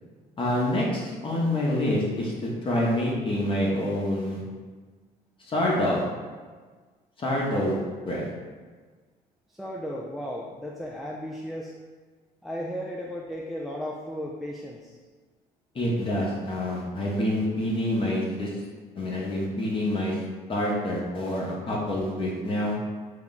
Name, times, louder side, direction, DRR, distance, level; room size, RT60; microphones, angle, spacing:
voice 1, 0.4-4.4 5.5-6.0 7.2-7.8 8.1-8.3 15.7-18.5 18.9-20.2 20.5-22.8, left 1 dB, 30° left, -4 dB, 0.9 m, -27 dB
voice 2, 9.5-11.7 12.4-15.0, equal, ahead, -3 dB, 0.3 m, -35 dB
3.4 x 2.9 x 4.0 m, 1.4 s
cardioid pair, 110°, 17 cm